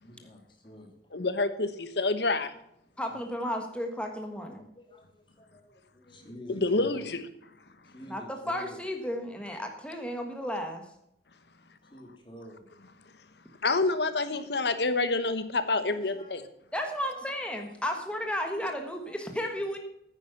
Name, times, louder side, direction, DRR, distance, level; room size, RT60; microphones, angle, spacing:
voice 1, 0.0-0.9 3.0-3.2 3.7-3.8 4.7-7.1 7.8-8.8 11.9-12.6 15.8-16.4 17.0-17.5 17.9-18.1 18.5-19.8, equal, 25° left, 2 dB, 2.8 m, -49 dB
voice 2, 1.1-2.5 6.5-7.2 13.6-16.4, left 3 dB, 75° left, 11 dB, 1.2 m, -27 dB
voice 3, 3.0-4.7 8.1-10.8 16.7-19.8, equal, 5° left, 3 dB, 1.5 m, -33 dB
9.9 x 9.5 x 7.1 m, 0.76 s
head